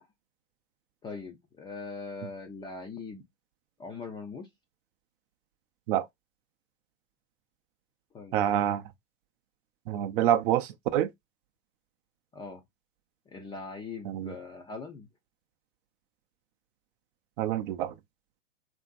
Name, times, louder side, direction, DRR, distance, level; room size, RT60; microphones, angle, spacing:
voice 1, 1.0-3.2 3.8-4.5 8.1-8.4 12.3-12.6 13.3-15.1, left 4 dB, 15° left, 0.4 m, -41 dB
voice 2, 8.3-8.8 9.9-11.1 14.1-14.3 17.4-17.9, right 11 dB, 45° right, 0.5 m, -27 dB
2.8 x 2.6 x 2.4 m
hypercardioid pair, 110°, 37 cm